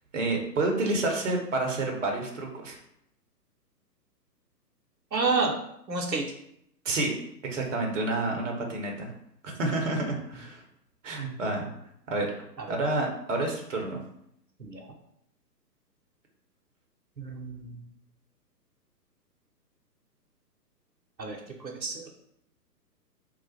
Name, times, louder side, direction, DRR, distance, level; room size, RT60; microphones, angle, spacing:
voice 1, 0.1-2.8 6.8-7.1 7.5-9.1 9.4-10.6 11.0-11.7 12.1-12.3 12.7-14.0, right 2 dB, 50° right, 1 dB, 0.9 m, -29 dB
voice 2, 5.1-5.5 5.9-6.3 12.6-12.7 14.6-14.8 17.2-17.8 21.2-22.1, right 4 dB, 85° right, 1 dB, 0.8 m, -30 dB
3.2 x 2.4 x 4.1 m, 0.75 s
figure-of-eight pair, 130°, 50 cm